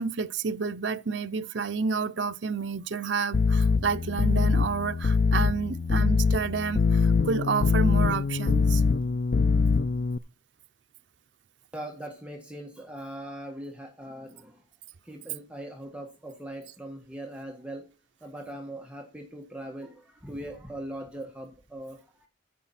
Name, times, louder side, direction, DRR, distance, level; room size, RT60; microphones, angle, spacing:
voice 1, 0.0-8.8, right 5 dB, 65° right, 0.6 m, -30 dB
sound 1, 3.3-10.2, left 4 dB, 50° left, 0.4 m, -23 dB
voice 2, 11.7-14.6 15.0-17.9 18.2-22.3, right 1 dB, 5° right, 1.5 m, -40 dB
14.5 x 5.8 x 4.2 m
head